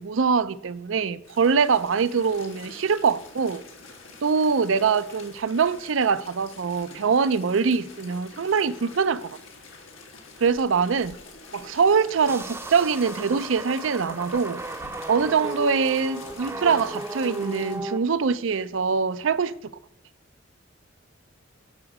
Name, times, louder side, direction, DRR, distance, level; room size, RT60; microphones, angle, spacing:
voice 1, 0.0-3.6 4.2-9.4 10.4-11.2 11.5-14.6 15.1-19.7, right 5 dB, 75° right, 0.5 m, -23 dB
sound 1, 1.2-17.8, left 3 dB, 90° left, 1.9 m, -46 dB
sound 2, 12.3-18.0, right 2 dB, 15° right, 0.6 m, -35 dB
9.5 x 6.3 x 4.8 m
head